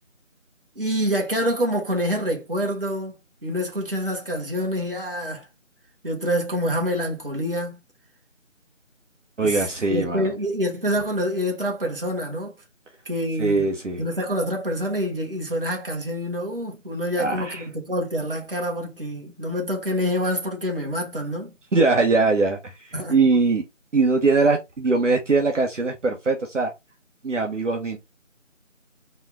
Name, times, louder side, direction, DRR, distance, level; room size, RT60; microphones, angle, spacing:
voice 1, 0.7-3.1 3.4-5.5 6.0-7.8 9.4-12.5 13.0-13.7 14.0-21.5 22.9-23.2, equal, 45° right, 1.4 m, -26 dB
voice 2, 9.4-10.3 13.4-14.0 17.2-17.6 21.7-23.6 23.9-26.7 27.2-28.0, right 3 dB, 65° right, 1.0 m, -21 dB
4.1 x 2.3 x 3.7 m
figure-of-eight pair, 175°, 39 cm